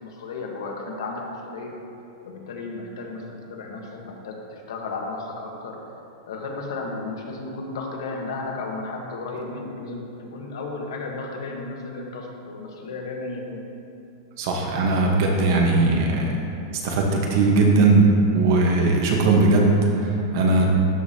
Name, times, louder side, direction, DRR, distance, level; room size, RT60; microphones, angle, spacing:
voice 1, 0.0-1.8 2.2-5.8 6.3-10.0 10.3-13.6, left 3 dB, 80° left, 0 dB, 1.4 m, -34 dB
voice 2, 14.4-16.4 16.8-20.7, right 3 dB, 45° right, 0 dB, 1.1 m, -19 dB
12.5 x 5.1 x 2.8 m, 2.7 s
supercardioid pair, 175°, 2 cm